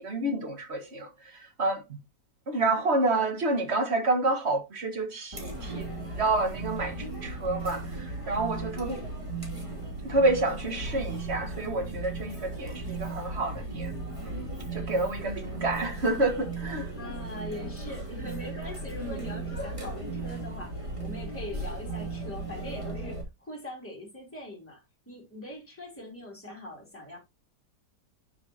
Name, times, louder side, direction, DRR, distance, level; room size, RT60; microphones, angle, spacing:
voice 1, 0.0-1.8 2.5-5.9 6.2-9.0 10.0-13.9 14.2-16.9, right 2 dB, 40° right, 1.9 m, -29 dB
Chatter, 5.3-23.2, right 2 dB, 20° right, 2.9 m, -36 dB
voice 2, 16.9-27.2, left 1 dB, 5° left, 3.0 m, -42 dB
9.4 x 6.6 x 2.8 m
omnidirectional pair, 1.8 m